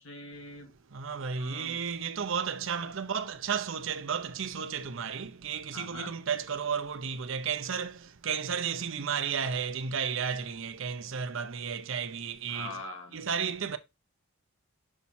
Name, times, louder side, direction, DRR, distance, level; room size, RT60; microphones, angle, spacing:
voice 1, 0.0-0.7 1.4-1.8 2.8-2.9 5.7-6.1 12.5-13.3, left 2 dB, 65° left, 1.8 m, -43 dB
voice 2, 0.9-12.8 13.1-13.8, right 6 dB, 60° right, 0.6 m, -33 dB
6.0 x 4.1 x 4.3 m
head